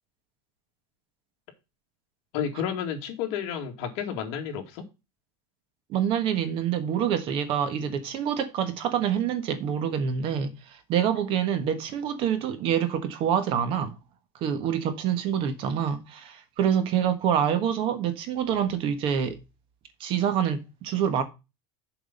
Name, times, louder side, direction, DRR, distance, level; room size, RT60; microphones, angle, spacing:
voice 1, 2.3-4.9, left 8 dB, 50° left, 2.4 m, -31 dB
voice 2, 5.9-14.0 14.4-19.4 20.0-21.2, right 8 dB, 40° right, 1.3 m, -26 dB
7.3 x 6.0 x 5.4 m
supercardioid pair, 165°, 14 cm